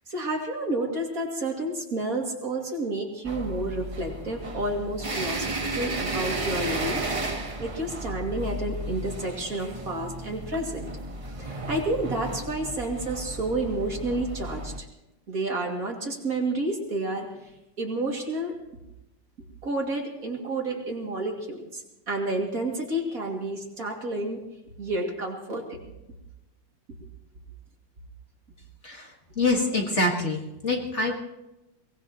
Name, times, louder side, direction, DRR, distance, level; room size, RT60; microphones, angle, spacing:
voice 1, 0.1-7.0 7.3-10.9 11.3-14.9 15.3-17.3 17.8-18.5 19.6-24.4 24.8-25.9 26.9-27.0, right 2 dB, 50° right, 0 dB, 2.8 m, -30 dB
sound 1, 3.2-14.8, right 2 dB, 25° right, 0.8 m, -33 dB
voice 2, 29.4-31.1, left 2 dB, 40° left, 0 dB, 2.0 m, -25 dB
23.5 x 18.5 x 3.0 m, 0.93 s
omnidirectional pair, 2.0 m